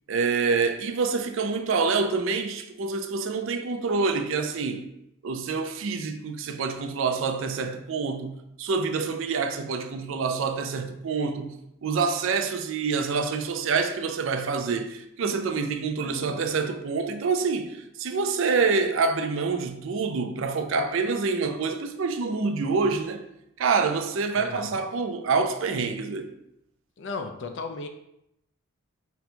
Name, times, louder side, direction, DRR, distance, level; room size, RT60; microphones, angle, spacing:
voice 1, 0.1-4.8 5.2-11.6 11.8-23.2 23.6-26.3, right 4 dB, 65° right, 0.4 m, -27 dB
voice 2, 16.0-16.4 24.3-24.8 27.0-27.9, left 3 dB, 55° left, 0.4 m, -36 dB
3.9 x 2.2 x 4.4 m
head